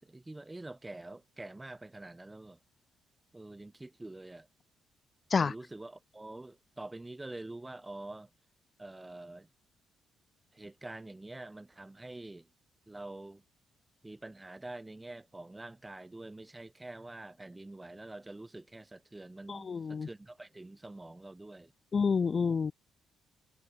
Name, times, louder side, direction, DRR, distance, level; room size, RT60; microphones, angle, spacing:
voice 1, 0.0-2.6 3.3-4.5 5.4-8.3 8.8-9.5 10.5-12.5 12.9-13.4 14.0-21.7, right 2 dB, 15° right, 1.0 m, -46 dB
voice 2, 19.5-20.1 21.9-22.7, left 5 dB, 40° left, 0.3 m, -28 dB
cardioid pair, 85°, 0 cm